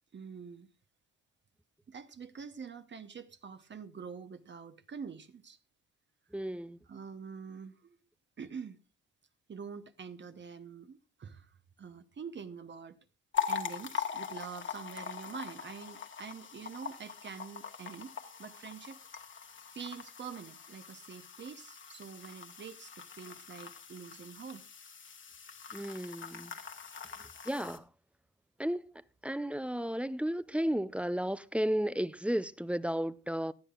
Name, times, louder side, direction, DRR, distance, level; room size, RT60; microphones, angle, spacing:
voice 1, 0.1-0.7 1.9-5.6 6.9-8.0 8.4-8.8 9.5-13.0 13.5-19.0 19.7-24.6, right 6 dB, 40° right, 0.9 m, -46 dB
voice 2, 6.3-6.8 25.7-26.5 27.5-27.8 28.6-33.5, equal, 5° right, 0.5 m, -33 dB
sound 1, 13.3-27.8, left 8 dB, 40° left, 1.4 m, -42 dB
18.5 x 11.0 x 2.4 m
cardioid pair, 90°, 30 cm